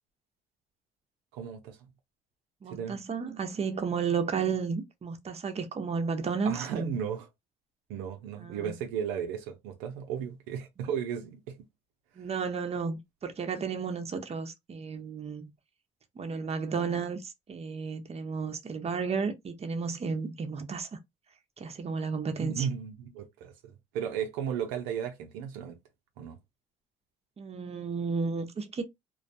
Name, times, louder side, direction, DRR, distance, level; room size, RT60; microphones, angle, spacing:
voice 1, 1.3-1.8 2.7-3.0 6.4-7.3 7.9-11.6 22.4-25.8 26.2-26.4, right 8 dB, 90° right, 0.5 m, -35 dB
voice 2, 2.6-6.9 8.4-8.8 12.2-15.5 16.2-20.9 21.6-22.7 27.4-28.8, right 5 dB, 30° right, 0.6 m, -33 dB
2.2 x 2.1 x 2.6 m
supercardioid pair, 70°, 20 cm